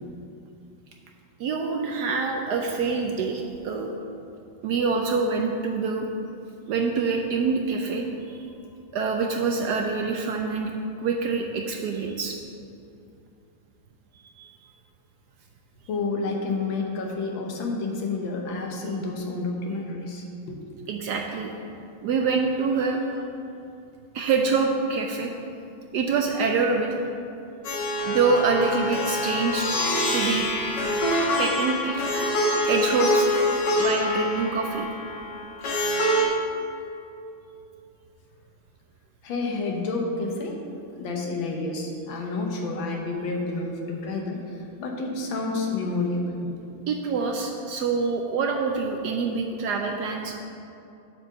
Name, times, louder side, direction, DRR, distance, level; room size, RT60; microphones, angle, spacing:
voice 1, 1.4-3.9 4.6-6.1 6.7-8.4 8.9-10.7 11.0-12.4 14.2-14.5 20.9-21.5 22.0-23.0 24.1-25.3 25.9-26.9 28.1-29.7 30.1-30.5 31.4-32.0 32.6-33.3 33.8-34.9 46.9-50.4, right 4 dB, 70° right, 2 dB, 1.0 m, -25 dB
voice 2, 15.9-20.6 39.2-40.6 41.0-46.5 49.5-49.6, left 3 dB, 80° left, 0 dB, 1.7 m, -29 dB
Plucked string instrument, 27.6-36.3, left 1 dB, 65° left, 1.7 m, -25 dB
7.7 x 4.6 x 6.3 m, 2.7 s
omnidirectional pair, 2.1 m